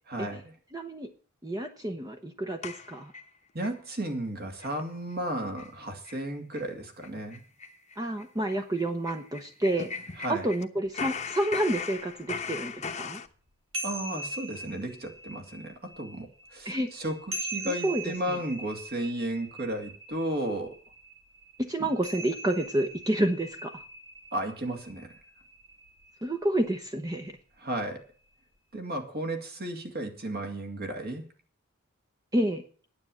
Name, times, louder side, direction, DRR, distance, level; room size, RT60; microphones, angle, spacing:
voice 1, 0.1-0.5 3.5-7.4 10.2-10.5 13.8-20.7 21.8-21.9 24.3-25.1 27.6-28.0 28.7-31.3, right 1 dB, 50° right, 4 dB, 2.5 m, -34 dB
voice 2, 0.7-1.1 1.4-3.1 8.0-9.9 10.3-13.2 16.6-16.9 17.6-18.4 21.6-23.8 26.2-27.3 32.3-32.6, right 1 dB, 20° right, 5 dB, 0.9 m, -29 dB
sound 1, 2.6-3.8 4.1-4.2 4.6-4.8 5.1-5.2 5.6-5.7 6.1-6.2 6.5-6.7 7.0-10.7 10.9-13.3, left 5 dB, 35° left, 1.0 m, -38 dB
sound 2, 10.9-11.0 11.5-11.6 12.0-12.1 13.3-26.8, right 1 dB, 75° right, 3.8 m, -41 dB
9.7 x 8.5 x 7.7 m, 0.42 s
head